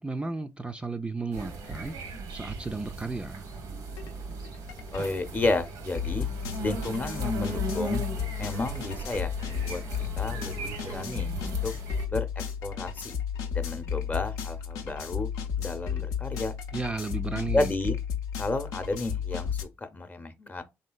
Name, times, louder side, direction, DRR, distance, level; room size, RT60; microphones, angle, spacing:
voice 1, 0.0-3.5 16.7-17.7, right 3 dB, 15° right, 0.3 m, -34 dB
sound 1, 1.3-12.1, right 3 dB, 90° right, 0.8 m, -38 dB
sound 2, 4.0-4.1 4.4-19.6, left 8 dB, 85° left, 0.5 m, -33 dB
voice 2, 4.9-6.3 6.6-8.0 8.4-9.8 10.2-11.7 12.1-12.3 12.6-13.1 13.5-15.3 15.6-16.5 17.5-17.9 18.4-20.6, left 2 dB, 30° left, 0.7 m, -31 dB
3.3 x 2.7 x 2.2 m
supercardioid pair, 60°, 6 cm